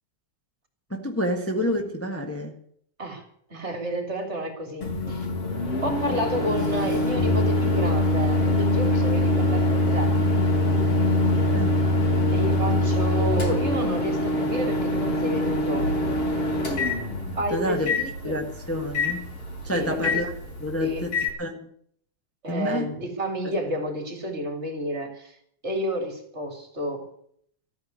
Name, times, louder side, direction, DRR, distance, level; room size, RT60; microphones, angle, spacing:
voice 1, 0.9-2.5 11.5-11.8 17.5-17.9 18.2-19.3 19.6-20.3 20.6-21.7 22.5-22.9 23.4-23.5, left 1 dB, 15° left, 2 dB, 0.5 m, -29 dB
voice 2, 3.5-5.2 5.8-10.1 12.3-15.9 17.3-18.3 19.7-20.2 20.8-21.1 22.4-25.4 25.6-27.0, equal, 20° right, 5 dB, 3.2 m, -30 dB
Microwave oven, 4.8-21.3, left 1 dB, 50° left, 4.5 m, -24 dB
14.5 x 9.4 x 9.3 m, 0.64 s
omnidirectional pair, 3.5 m